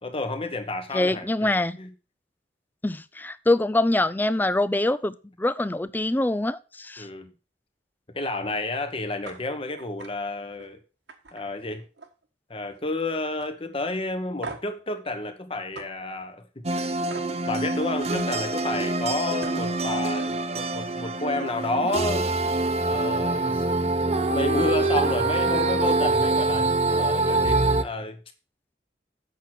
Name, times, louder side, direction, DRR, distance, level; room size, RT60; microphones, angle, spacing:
voice 1, 0.0-1.3 1.8-1.9 7.0-7.3 8.1-10.8 11.3-11.8 12.5-16.9 17.5-22.3 22.8-23.7 24.3-28.2, left 2 dB, 30° left, 1.3 m, -30 dB
voice 2, 0.9-1.8 2.8-7.1, left 2 dB, 10° left, 0.4 m, -24 dB
sound 1, 9.2-9.4 9.8-10.1 10.5-10.7 11.1-12.3 12.5-13.0 13.4-13.5 14.4-14.8 15.7-15.9 17.1-17.3 19.0-19.1 19.4-19.7, right 3 dB, 85° right, 1.6 m, -40 dB
sound 2, 16.6-27.8, right 2 dB, 35° right, 0.9 m, -25 dB
8.2 x 6.2 x 6.1 m
head